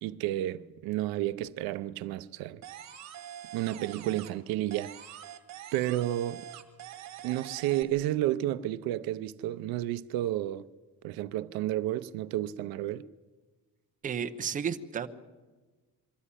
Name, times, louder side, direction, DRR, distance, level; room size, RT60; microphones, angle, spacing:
voice 1, 0.0-2.6 3.5-4.9 5.7-6.4 7.2-10.7 11.0-13.1, right 14 dB, 75° right, 0.7 m, -31 dB
sound 1, 2.6-4.4 4.7-7.8, right 11 dB, 50° right, 1.6 m, -45 dB
voice 2, 14.0-15.1, right 7 dB, 20° right, 0.8 m, -32 dB
22.5 x 13.5 x 9.9 m
cardioid pair, 175°, 36 cm